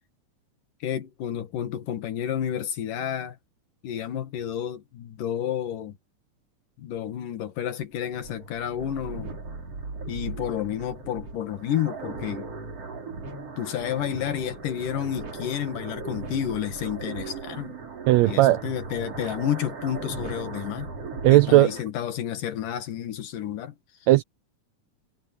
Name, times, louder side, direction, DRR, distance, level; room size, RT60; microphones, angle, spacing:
voice 1, 0.8-3.4 3.8-6.0 6.8-9.3 10.1-12.5 13.6-17.8 18.2-20.9 21.3-23.8, left 10 dB, 90° left, 3.4 m, -30 dB
sound 1, 7.8-21.8, right 3 dB, 50° right, 4.9 m, -38 dB
voice 2, 18.1-18.6 21.2-21.7 24.1-24.2, right 17 dB, 85° right, 1.5 m, -16 dB
omnidirectional pair, 3.6 m